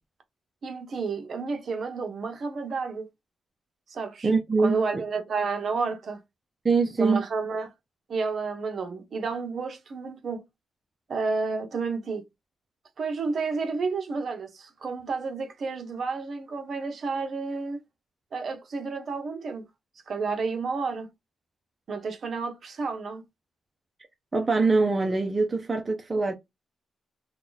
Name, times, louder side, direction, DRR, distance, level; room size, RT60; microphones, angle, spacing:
voice 1, 0.6-3.1 3.9-4.3 4.6-6.2 7.0-7.7 8.1-10.4 11.1-12.2 13.0-17.8 18.3-19.6 20.1-21.1 21.9-23.2, right 4 dB, 55° right, 0.8 m, -31 dB
voice 2, 4.2-4.8 6.6-7.2 24.3-26.3, right 3 dB, 25° right, 0.5 m, -23 dB
2.8 x 2.3 x 3.9 m
cardioid pair, 105°, 0 cm